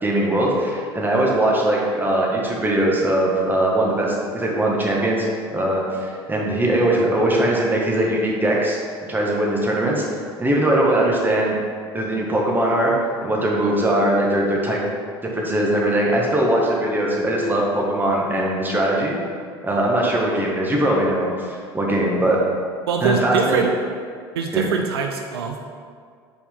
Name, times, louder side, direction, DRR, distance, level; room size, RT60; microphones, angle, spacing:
voice 1, 0.0-8.8 9.1-10.0 10.4-11.6 11.9-12.9 13.2-14.8 15.3-19.1 19.6-22.4 23.0-23.6 24.5-24.7, right 1 dB, 15° right, -2 dB, 1.8 m, -20 dB
voice 2, 22.9-23.7 24.4-25.6, right 5 dB, 75° right, 3 dB, 0.5 m, -23 dB
8.6 x 5.0 x 3.9 m, 2.1 s
figure-of-eight pair, 65°, 13 cm